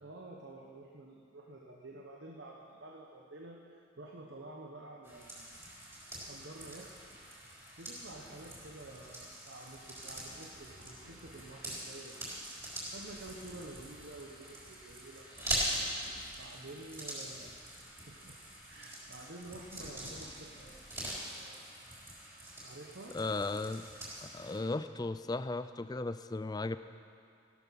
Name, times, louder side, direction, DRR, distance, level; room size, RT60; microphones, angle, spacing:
voice 1, 0.0-5.6 6.3-7.0 7.8-12.4 12.9-15.8 16.4-17.8 18.1-18.4 18.7-20.7 22.6-23.2, right 2 dB, 60° right, -1 dB, 1.2 m, -50 dB
sound 1, 5.0-24.6, right 1 dB, 15° right, 3.9 m, -43 dB
sound 2, 6.2-7.3 7.9-9.2 9.6-11.8 12.1-12.7 12.9-14.9 15.4-16.5 17.3-21.8, equal, 85° right, 4.9 m, -58 dB
voice 2, 23.1-23.9 24.2-26.8, left 2 dB, 20° left, 12 dB, 0.4 m, -36 dB
16.0 x 12.5 x 5.9 m, 2.4 s
head